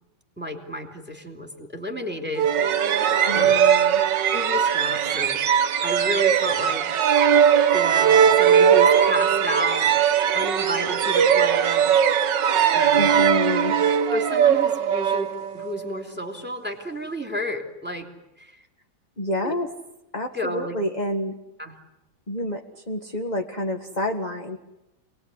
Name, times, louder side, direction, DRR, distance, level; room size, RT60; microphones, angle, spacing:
voice 1, 0.4-2.5 3.3-3.6 4.3-5.4 5.8-6.8 7.7-9.9 10.3-12.0 12.7-13.1 13.8-18.1 18.4-18.5 19.4-19.5 20.3-20.8 21.6-21.8, equal, 5° right, 3 dB, 3.1 m, -31 dB
sound 1, 2.4-15.9, right 8 dB, 65° right, 1.7 m, -19 dB
voice 2, 3.2-4.0 13.0-13.7 19.2-19.7 20.1-21.3 22.3-24.6, left 1 dB, 20° left, 3 dB, 1.6 m, -28 dB
28.0 x 20.5 x 9.8 m, 0.95 s
omnidirectional pair, 2.2 m